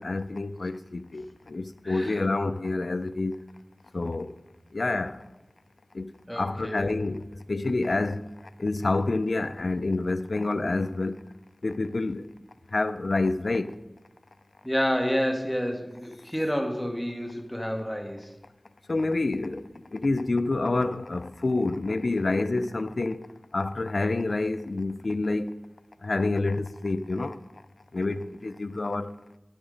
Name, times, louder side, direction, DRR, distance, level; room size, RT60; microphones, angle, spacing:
voice 1, 0.0-3.4 3.9-4.3 4.7-5.2 5.9-6.1 6.4-8.3 8.6-11.2 11.6-12.3 12.7-13.8 18.9-23.3 23.5-25.5 26.0-27.4 27.9-29.1, left 2 dB, 70° left, 0.5 m, -28 dB
voice 2, 1.8-2.2 6.3-6.9 14.6-18.3, equal, 5° left, 1.5 m, -29 dB
12.5 x 5.0 x 5.1 m
wide cardioid pair, 50°, 0 cm